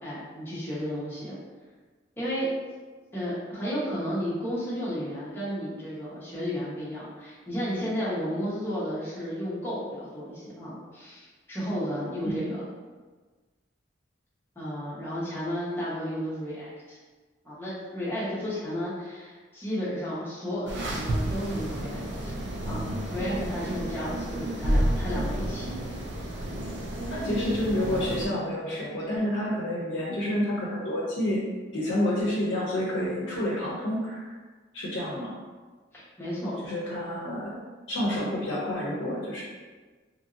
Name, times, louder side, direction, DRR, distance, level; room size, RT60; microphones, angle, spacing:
voice 1, 0.0-1.4 2.2-2.5 3.1-12.6 14.5-17.0 17.4-22.3 22.6-25.8 35.9-36.7, equal, 15° left, -10 dB, 0.9 m, -33 dB
sound 1, 20.7-28.3, right 1 dB, 75° right, 0.5 m, -30 dB
voice 2, 27.1-31.4 31.7-34.3 34.7-35.3 36.6-37.6 37.9-39.4, left 1 dB, 75° left, -6 dB, 0.6 m, -29 dB
2.8 x 2.6 x 2.5 m, 1.4 s
head